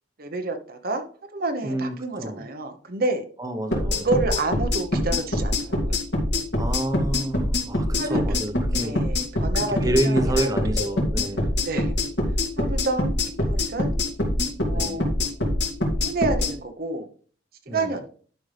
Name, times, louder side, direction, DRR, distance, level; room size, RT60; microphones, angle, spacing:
voice 1, 0.2-1.0 1.3-3.2 3.9-6.0 8.0-8.4 8.7-10.8 11.6-11.9 12.6-13.1 13.4-13.9 14.6-15.2 16.0-17.1 17.7-18.1, right 2 dB, 55° right, 7 dB, 0.9 m, -29 dB
voice 2, 1.6-2.5 3.4-4.1 6.5-8.9 9.8-11.5 14.7-15.0 17.7-17.9, right 1 dB, 20° right, 6 dB, 0.9 m, -28 dB
sound 1, 3.7-16.5, left 1 dB, 65° left, 2.6 m, -24 dB
11.5 x 5.4 x 3.3 m, 0.44 s
head